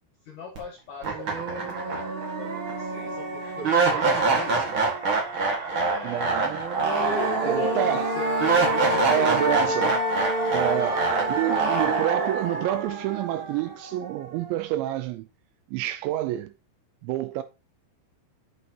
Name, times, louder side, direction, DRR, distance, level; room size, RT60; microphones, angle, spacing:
voice 1, 0.3-4.9 5.7-9.6 10.7-11.9, left 3 dB, 70° left, 2.0 m, -38 dB
sound 1, 0.5-0.6 1.0-14.1, right 3 dB, 60° right, 1.3 m, -25 dB
voice 2, 6.0-6.7 7.3-8.2 9.1-10.0 10.5-11.0 11.3-15.3 15.7-16.5 17.0-17.4, right 14 dB, 85° right, 2.7 m, -28 dB
11.0 x 5.6 x 2.9 m
omnidirectional pair, 5.6 m